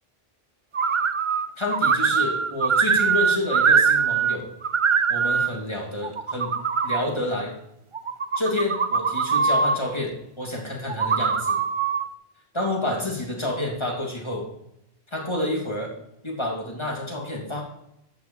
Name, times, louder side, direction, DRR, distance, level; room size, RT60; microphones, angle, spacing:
sound 1, 0.7-1.5 1.7-4.4 4.6-5.5 6.0-7.0 7.9-9.8 10.9-12.0, right 6 dB, 40° right, 0.4 m, -22 dB
voice 1, 1.6-4.5 5.1-6.6 6.8-7.5 8.4-11.6 12.5-14.5 15.1-15.9 16.2-17.6, left 1 dB, 25° left, -1 dB, 2.4 m, -29 dB
9.8 x 5.7 x 7.4 m, 0.81 s
omnidirectional pair, 1.1 m